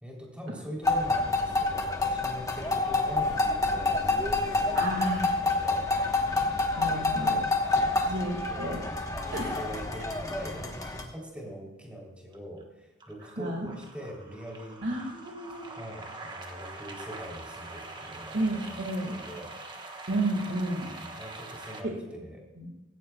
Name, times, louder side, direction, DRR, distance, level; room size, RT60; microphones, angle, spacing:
voice 1, 0.0-4.9 5.4-5.9 6.8-7.4 7.8-8.1 8.5-8.7 9.1-14.8 15.7-19.6 20.9-22.4, equal, 5° right, -2 dB, 3.4 m, -43 dB
sound 1, 0.8-11.0, left 3 dB, 15° left, 1.2 m, -28 dB
voice 2, 4.7-5.3 6.7-7.4 8.0-8.8 9.3-9.6 13.4-13.7 14.8-15.7 18.3-19.1 20.1-20.9 21.8-22.0 22.6-22.7, right 1 dB, 70° right, -1 dB, 2.1 m, -31 dB
sound 2, 12.3-12.6 13.0-21.8, right 2 dB, 25° right, 1.2 m, -44 dB
17.0 x 15.0 x 2.3 m, 1.1 s
head